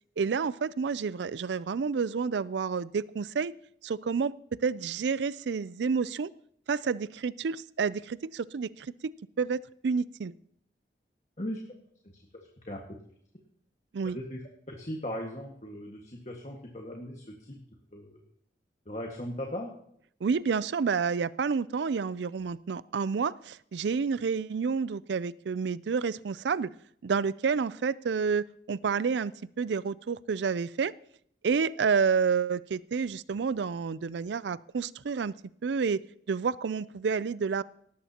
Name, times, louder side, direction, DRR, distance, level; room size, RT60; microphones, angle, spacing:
voice 1, 0.2-3.5 3.8-6.3 6.7-9.1 9.4-10.3 13.9-14.2 20.2-26.7 27.0-29.3 29.6-30.9 31.4-35.3 35.6-36.0 36.3-37.6, right 5 dB, 85° right, 18 dB, 0.4 m, -29 dB
voice 2, 14.1-17.6 17.9-18.2 18.9-19.8, left 1 dB, 40° left, -1 dB, 1.8 m, -38 dB
18.0 x 15.0 x 2.9 m, 0.66 s
head